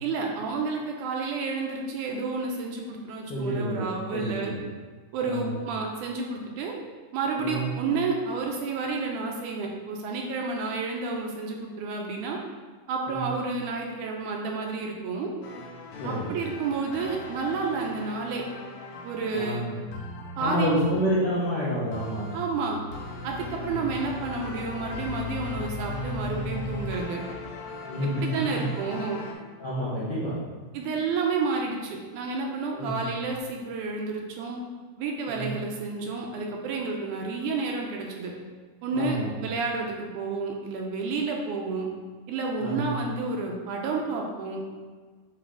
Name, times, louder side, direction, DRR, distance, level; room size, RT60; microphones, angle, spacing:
voice 1, 0.0-4.5 5.1-6.7 7.1-12.4 12.9-15.3 16.0-18.5 19.0-19.6 20.4-20.9 22.3-22.8 23.2-27.2 28.0-29.2 30.7-34.6 35.0-38.3 38.8-41.9 42.3-44.6, right 4 dB, 80° right, 0 dB, 2.0 m, -30 dB
voice 2, 3.3-3.8 4.1-4.6 5.2-5.5 7.4-7.7 13.1-13.3 16.0-16.3 19.3-19.8 20.4-22.3 23.5-23.9 27.9-28.7 29.6-30.4 32.7-33.1 35.3-35.6 38.9-39.3 42.6-42.9, equal, 65° left, -10 dB, 1.0 m, -29 dB
sound 1, 15.4-29.3, left 3 dB, 85° left, 2.4 m, -38 dB
8.7 x 3.0 x 3.7 m, 1.5 s
omnidirectional pair, 3.8 m